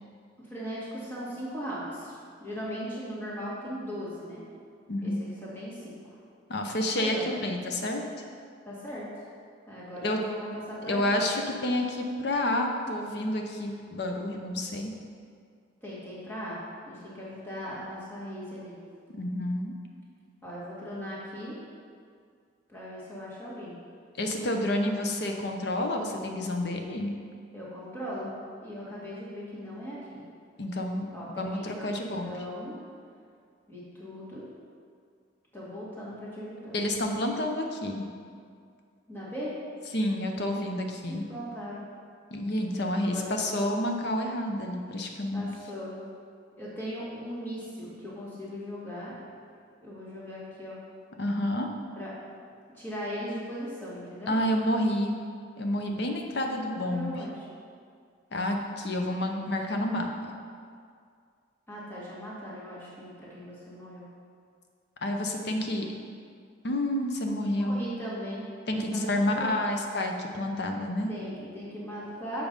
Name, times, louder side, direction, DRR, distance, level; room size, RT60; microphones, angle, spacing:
voice 1, 0.4-4.4 5.0-5.1 5.4-5.9 7.0-7.3 8.7-9.3 9.7-11.2 15.8-16.6 16.9-18.8 20.4-21.6 22.7-23.7 27.5-28.3 28.6-30.2 31.1-31.9 32.2-32.7 33.7-34.4 35.5-36.7 39.1-39.5 41.1-41.8 43.0-43.4 45.3-45.9 46.6-49.1 49.8-50.8 52.0-52.1 52.7-54.4 56.7-57.5 61.7-64.1 67.6-68.4 68.7-69.6 71.1-72.5, equal, 10° left, -8 dB, 1.9 m, -38 dB
voice 2, 6.5-8.0 10.0-10.2 10.8-14.9 19.2-19.8 24.2-27.1 30.6-31.1 31.3-32.4 36.7-38.1 39.9-41.2 42.3-45.5 51.2-51.7 54.3-55.2 55.6-57.2 58.3-60.1 65.0-65.9 66.6-67.8 68.7-71.1, left 1 dB, 55° left, 3 dB, 0.8 m, -29 dB
7.2 x 4.7 x 5.2 m, 2.2 s
head